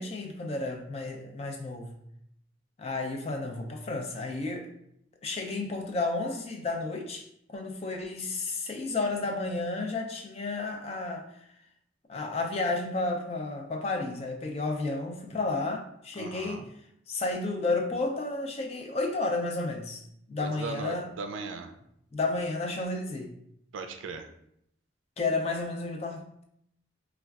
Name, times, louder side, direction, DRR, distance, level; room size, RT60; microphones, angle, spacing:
voice 1, 0.0-1.9 2.8-4.7 5.2-7.3 7.5-11.3 12.1-16.7 17.1-20.0 20.3-21.1 22.1-23.3 25.2-26.4, left 3 dB, 30° left, 3 dB, 0.4 m, -32 dB
voice 2, 16.2-16.6 20.4-21.7 23.7-24.3, right 4 dB, 80° right, 6 dB, 0.4 m, -38 dB
4.3 x 2.3 x 2.3 m, 0.75 s
head